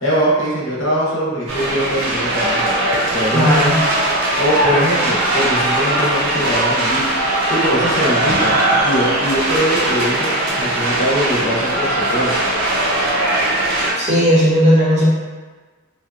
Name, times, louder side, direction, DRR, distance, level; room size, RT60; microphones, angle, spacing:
voice 1, 0.0-2.6 3.1-3.5 4.4-7.0 7.5-8.5 8.8-10.3 10.6-12.4, equal, 60° left, -6 dB, 0.7 m, -21 dB
sound 1, 1.5-13.9, right 1 dB, 70° right, 0.5 m, -19 dB
voice 2, 3.3-3.8 14.0-15.0, equal, 35° right, -8 dB, 0.7 m, -14 dB
2.6 x 2.1 x 2.3 m, 1.3 s
head